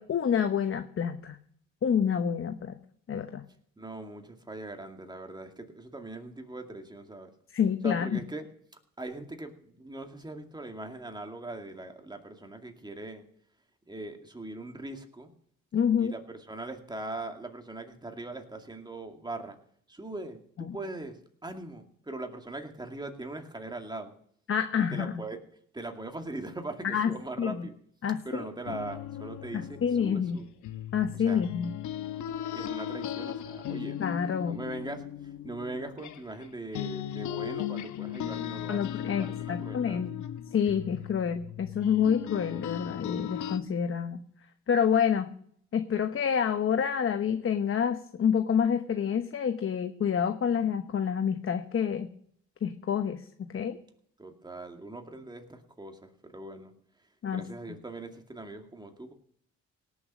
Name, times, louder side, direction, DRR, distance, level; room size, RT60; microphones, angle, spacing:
voice 1, 0.0-1.4 1.8-2.8 3.1-3.4 7.5-8.2 15.7-16.1 20.7-20.8 24.5-25.1 26.9-27.1 27.4-27.7 28.0-28.2 29.5-30.4 30.9-31.7 34.0-34.6 38.7-40.1 40.5-44.2 44.7-45.3 45.7-52.1 52.6-53.2 53.5-53.8 57.2-57.4, left 7 dB, 45° left, 8 dB, 1.0 m, -28 dB
voice 2, 3.8-7.3 7.8-8.5 9.0-13.2 13.9-15.3 16.0-19.6 19.9-21.2 21.4-24.1 24.8-25.4 25.7-27.7 28.2-30.5 31.1-31.5 32.5-34.0 34.4-40.0 54.2-56.7 57.3-59.1, right 2 dB, 15° right, 4 dB, 2.3 m, -41 dB
sound 1, 28.6-36.5 36.7-43.6, left 11 dB, 75° left, 1.0 m, -37 dB
18.0 x 7.2 x 6.3 m, 0.63 s
cardioid pair, 90°, 30 cm